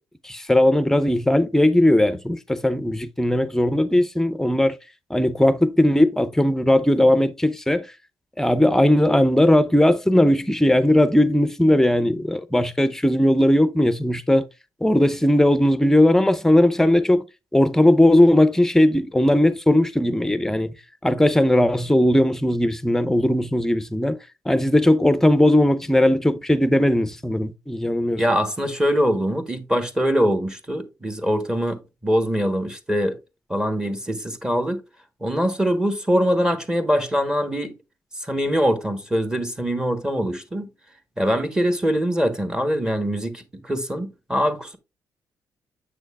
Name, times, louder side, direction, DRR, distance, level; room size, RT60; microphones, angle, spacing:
voice 1, 0.2-4.8 5.1-7.9 8.4-14.5 14.8-17.2 17.5-20.7 21.0-24.2 24.5-28.2, left 1 dB, 5° left, 0.6 m, -18 dB
voice 2, 28.2-33.2 33.5-34.8 35.2-37.8 38.2-40.7 41.2-44.8, equal, 10° right, 1.1 m, -23 dB
7.5 x 6.3 x 2.3 m
cardioid pair, 110°, 7 cm